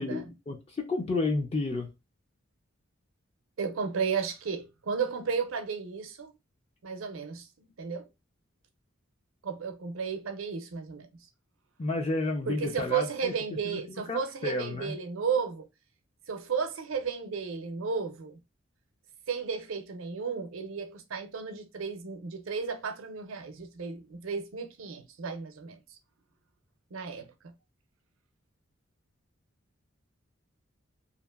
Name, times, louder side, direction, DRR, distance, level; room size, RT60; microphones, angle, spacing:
voice 1, 0.0-1.9 11.8-13.3 13.6-13.8 14.1-15.0, left 2 dB, 30° left, 0.4 m, -31 dB
voice 2, 3.6-6.3 6.8-8.1 9.4-11.1 12.5-15.7 16.3-18.4 19.3-26.0 26.9-27.3, right 6 dB, 80° right, 0.5 m, -33 dB
2.8 x 2.4 x 2.3 m
head